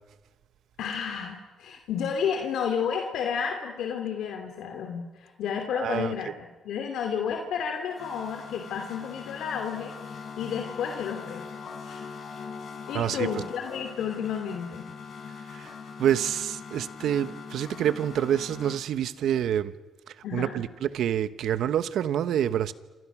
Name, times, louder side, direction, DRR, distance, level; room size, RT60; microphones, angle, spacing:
voice 1, 0.8-9.9 10.4-11.5 11.8-12.0 12.9-14.9 20.2-20.6, left 7 dB, 80° left, 4 dB, 2.5 m, -31 dB
voice 2, 5.7-6.1 12.9-13.3 15.5-15.7 16.0-19.7 20.1-22.7, right 10 dB, 75° right, 14 dB, 1.1 m, -27 dB
sound 1, 7.7-18.8, left 5 dB, 60° left, 4.7 m, -41 dB
28.0 x 26.5 x 6.1 m, 1.2 s
cardioid pair, 90°, 0 cm